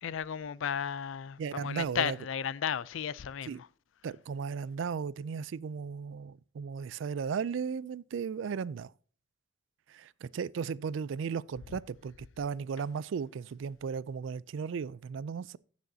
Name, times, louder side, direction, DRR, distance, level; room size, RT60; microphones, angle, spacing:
voice 1, 0.0-3.7 11.7-11.8, left 8 dB, 70° left, 0.4 m, -34 dB
voice 2, 1.4-2.2 3.5-3.6 4.0-8.9 9.9-15.6, right 6 dB, 70° right, 0.3 m, -36 dB
15.5 x 6.3 x 2.7 m
head